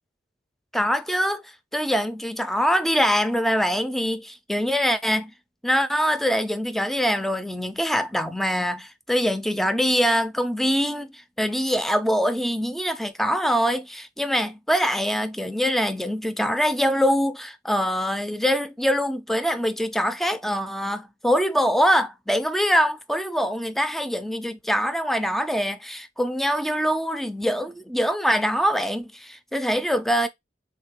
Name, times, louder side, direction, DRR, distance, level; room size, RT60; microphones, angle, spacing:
voice 1, 0.7-1.4 1.7-5.3 5.6-30.3, equal, ahead, 0.3 m, -24 dB
3.6 x 2.2 x 4.3 m
head